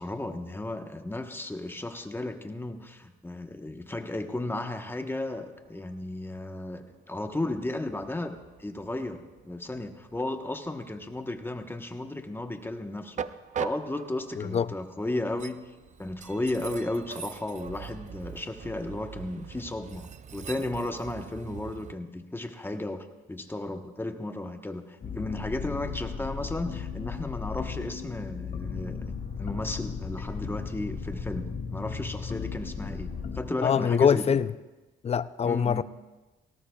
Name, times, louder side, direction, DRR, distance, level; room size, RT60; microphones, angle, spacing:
voice 1, 0.0-13.3 13.6-15.7 16.0-34.4 35.4-35.8, left 2 dB, 10° left, 1.1 m, -34 dB
Train, 5.2-21.9, right 7 dB, 40° right, 0.5 m, -43 dB
voice 2, 14.4-14.7 33.6-34.5 35.0-35.8, left 7 dB, 30° left, 0.4 m, -24 dB
sound 1, 25.0-33.4, left 6 dB, 50° left, 2.5 m, -36 dB
18.0 x 17.5 x 2.3 m
cardioid pair, 90°, 20 cm